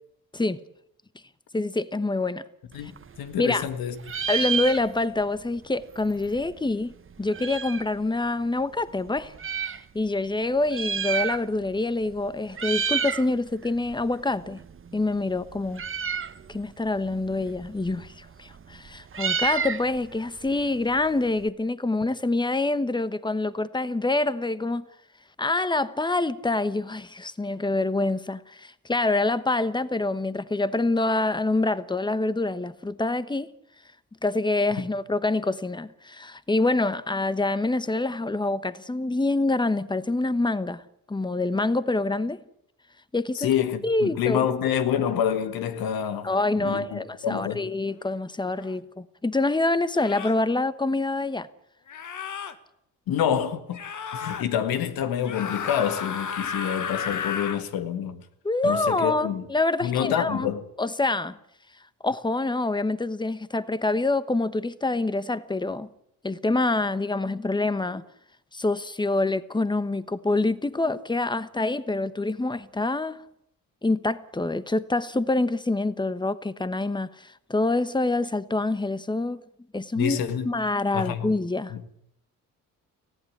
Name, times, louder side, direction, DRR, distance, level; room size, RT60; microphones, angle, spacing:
voice 1, 1.5-2.4 2.8-2.9 3.4-3.6 4.3-9.3 9.6-14.6 14.9-15.8 16.5-24.9 25.4-33.5 34.2-40.8 41.1-42.4 43.1-43.5 43.8-44.5 46.2-51.5 58.4-60.5 60.8-61.4 62.0-65.9 66.2-68.0 68.5-73.2 73.8-79.4 79.7-80.2 80.4-81.7, left 2 dB, 15° left, 1.1 m, -26 dB
Meow, 2.7-3.7 4.0-5.3 5.6-5.7 5.8-8.0 8.6-9.8 10.6-11.8 12.0-12.2 12.5-13.3 13.6-21.5, right 6 dB, 35° right, 1.1 m, -31 dB
voice 2, 3.2-4.0 43.4-46.3 46.6-47.7 53.1-53.8 54.1-58.2 58.6-59.5 59.8-60.6 80.0-80.5 80.9-81.3 81.7-81.9, left 9 dB, 85° left, 1.8 m, -27 dB
sound 1, 48.6-48.7 50.0-50.4 51.9-52.5 53.7-54.5 55.2-57.6, left 7 dB, 60° left, 1.7 m, -33 dB
19.0 x 15.0 x 9.8 m
cardioid pair, 80°, 35 cm